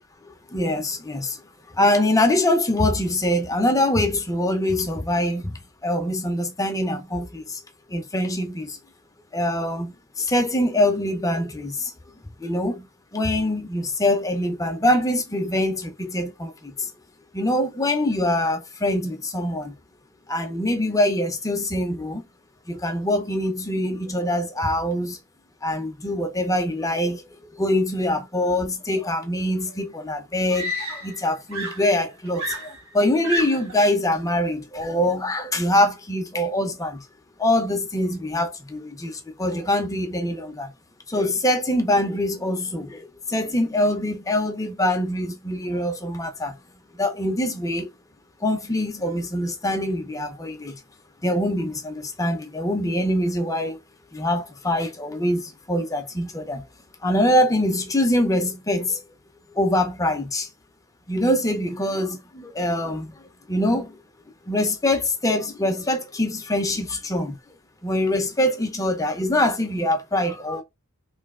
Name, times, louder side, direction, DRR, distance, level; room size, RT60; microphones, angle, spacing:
voice 1, 0.5-1.4 1.7-7.6 7.9-8.8 9.3-11.9 12.2-12.9 13.1-16.9 17.3-19.7 20.3-22.2 22.7-25.2 25.6-27.2 27.5-37.1 37.4-40.7 41.1-46.6 47.0-47.9 48.4-50.8 51.2-53.8 54.1-56.7 57.0-59.0 59.5-60.5 61.1-63.2 63.5-64.0 64.5-67.4 67.8-70.6, left 1 dB, 15° left, 0.7 m, -24 dB
Screaming, 29.7-29.8 30.5-31.3 31.5-33.8 34.8-35.1, right 1 dB, 70° right, 1.9 m, -31 dB
3.3 x 2.8 x 3.6 m
head